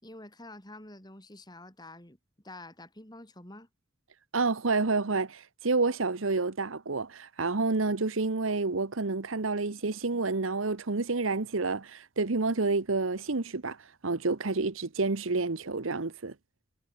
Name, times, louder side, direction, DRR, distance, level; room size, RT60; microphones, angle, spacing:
voice 1, 0.0-2.2 2.4-3.7, left 2 dB, 20° left, 4.7 m, -48 dB
voice 2, 4.3-13.8 14.0-16.3, right 3 dB, 75° right, 1.1 m, -29 dB
head